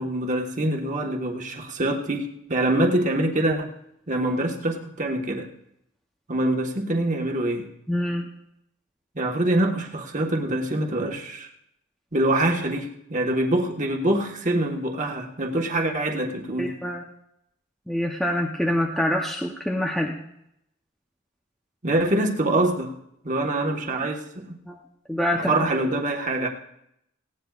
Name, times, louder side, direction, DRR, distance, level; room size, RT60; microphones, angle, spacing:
voice 1, 0.0-3.7 4.1-5.5 6.3-7.7 9.1-11.5 12.1-16.7 21.8-22.9 23.2-24.5 25.5-26.5, right 1 dB, 35° right, 2 dB, 1.4 m, -25 dB
voice 2, 7.9-8.3 16.6-17.0 17.9-20.2 24.6-24.8 25.1-25.5, left 1 dB, ahead, 0 dB, 0.8 m, -25 dB
18.5 x 16.5 x 2.4 m, 0.78 s
head